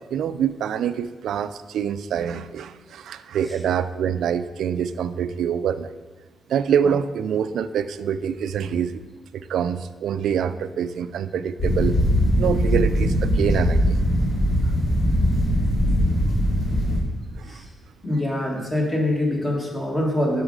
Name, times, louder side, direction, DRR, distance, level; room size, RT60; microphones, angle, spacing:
voice 1, 0.1-5.9 6.5-9.0 9.3-11.9 12.4-14.0 17.4-17.6, right 8 dB, 80° right, 12 dB, 0.3 m, -25 dB
sound 1, 11.6-17.0, equal, 70° left, 2.6 m, -20 dB
voice 2, 18.0-20.4, left 1 dB, 20° left, -1 dB, 1.5 m, -24 dB
7.9 x 6.2 x 3.8 m, 1.3 s
cardioid pair, 135°, 0 cm